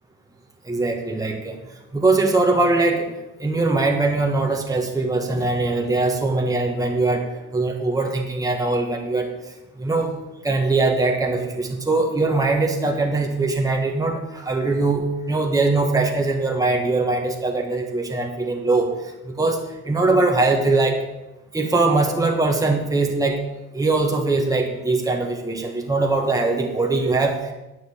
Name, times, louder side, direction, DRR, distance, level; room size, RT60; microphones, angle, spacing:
voice 1, 0.6-1.6 1.9-3.1 3.4-9.3 9.8-10.1 10.4-18.9 19.2-21.0 21.5-23.4 23.7-27.4, right 3 dB, 10° right, 1 dB, 1.5 m, -21 dB
9.6 x 5.3 x 8.1 m, 1.0 s
cardioid pair, 90°, 30 cm